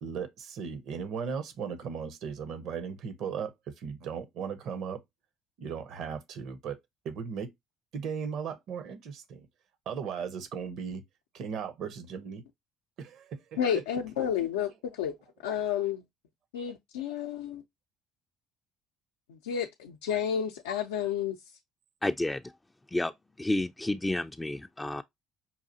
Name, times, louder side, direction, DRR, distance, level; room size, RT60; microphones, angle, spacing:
voice 1, 0.0-5.0 5.6-6.8 7.0-7.5 7.9-9.5 9.9-11.0 11.3-12.4 13.0-13.6, right 6 dB, 65° right, 0.7 m, -37 dB
voice 2, 13.6-15.2 15.4-16.0 16.5-17.6 19.3-21.4, left 9 dB, 85° left, 0.4 m, -31 dB
voice 3, 22.0-22.4 22.9-23.1 23.4-25.0, left 1 dB, 15° left, 0.3 m, -30 dB
5.6 x 2.4 x 2.6 m
hypercardioid pair, 65°, 0 cm